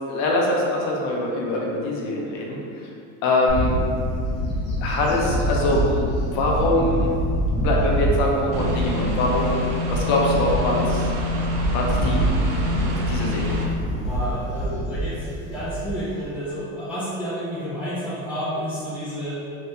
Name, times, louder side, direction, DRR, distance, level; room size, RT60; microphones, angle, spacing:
voice 1, 0.1-2.9 3.2-3.7 4.8-5.8 6.3-7.1 7.5-11.1 11.7-12.2 13.1-13.6, left 1 dB, 50° left, -2 dB, 0.6 m, -23 dB
Bird / Wind, 3.5-16.3, right 1 dB, 30° left, 1.0 m, -26 dB
sound 1, 8.5-13.7, left 2 dB, 80° right, 0.6 m, -27 dB
voice 2, 12.6-13.0 14.0-19.4, equal, 5° right, -13 dB, 0.3 m, -30 dB
2.8 x 2.6 x 3.3 m, 2.4 s
supercardioid pair, 150°, 38 cm